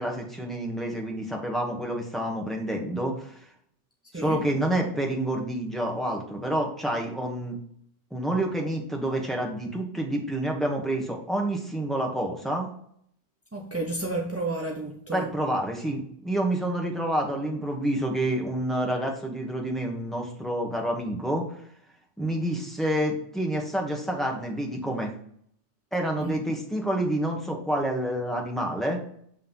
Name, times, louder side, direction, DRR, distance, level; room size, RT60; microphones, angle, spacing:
voice 1, 0.0-3.4 4.1-7.6 8.1-12.7 15.1-21.5 22.2-25.1 25.9-29.0, right 1 dB, ahead, 1.1 m, -28 dB
voice 2, 4.1-4.4 13.5-15.3 26.2-26.4, right 2 dB, 20° right, 0.4 m, -31 dB
7.6 x 3.2 x 5.4 m
omnidirectional pair, 1.2 m